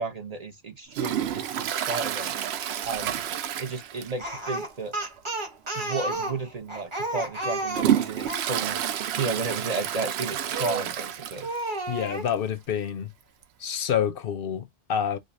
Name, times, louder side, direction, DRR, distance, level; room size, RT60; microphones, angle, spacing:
voice 1, 0.0-2.4 2.8-3.2 3.6-5.0 5.7-8.8 9.2-11.5, right 3 dB, 45° right, 0.6 m, -33 dB
Toilet flush, 0.9-4.4 4.6-4.7 5.2-5.3 6.1-6.2 6.8-11.7 12.0-12.1 12.3-12.4 13.4-13.5, right 10 dB, 75° right, 0.8 m, -29 dB
Speech, 4.2-8.5 10.5-11.0 11.4-12.3, right 2 dB, 25° right, 1.2 m, -32 dB
voice 2, 11.9-13.1 13.6-15.2, left 8 dB, 65° left, 0.7 m, -28 dB
4.8 x 2.1 x 2.5 m
omnidirectional pair, 1.1 m